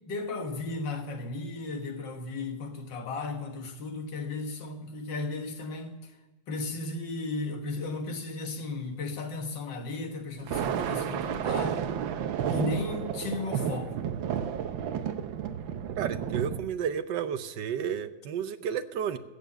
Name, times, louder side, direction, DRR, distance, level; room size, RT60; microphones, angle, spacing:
voice 1, 0.0-6.2 6.5-11.8 12.5-13.9, left 3 dB, 70° left, 2.1 m, -35 dB
Thunder, 10.4-16.6, right 8 dB, 85° right, 1.6 m, -31 dB
voice 2, 16.0-19.2, right 8 dB, 70° right, 1.4 m, -31 dB
16.0 x 7.0 x 7.4 m
omnidirectional pair, 2.1 m